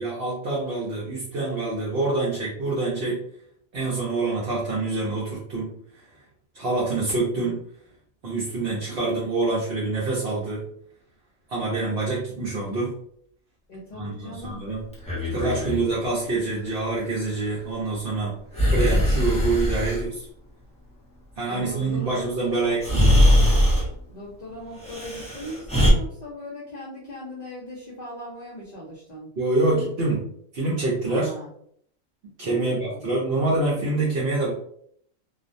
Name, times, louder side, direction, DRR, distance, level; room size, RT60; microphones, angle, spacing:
voice 1, 0.0-3.2 3.7-6.0 6.5-7.6 8.2-10.6 11.5-12.9 13.9-14.8 15.3-18.3 18.7-20.3 21.4-23.3 29.4-30.2 30.5-31.3 32.4-34.5, right 3 dB, 55° right, -5 dB, 0.8 m, -26 dB
voice 2, 13.7-14.6 21.5-22.8 24.1-29.3 31.0-31.5 32.4-33.2, equal, 55° left, -6 dB, 0.4 m, -39 dB
Breathing, 14.9-15.8 18.5-20.0 22.2-22.3 22.8-23.9 24.8-25.9, left 1 dB, 5° left, 0.7 m, -21 dB
2.4 x 2.1 x 2.5 m, 0.65 s
omnidirectional pair, 1.4 m